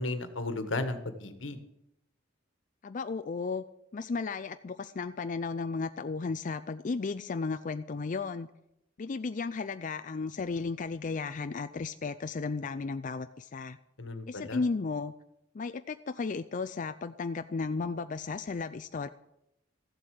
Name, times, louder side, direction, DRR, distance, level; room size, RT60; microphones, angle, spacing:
voice 1, 0.0-1.6 14.0-14.6, left 2 dB, 85° left, 8 dB, 1.5 m, -34 dB
voice 2, 2.8-3.6 3.9-8.5 9.0-13.8 14.3-15.1 15.5-19.1, left 4 dB, 45° left, 10 dB, 0.4 m, -34 dB
14.5 x 8.0 x 7.6 m, 0.82 s
head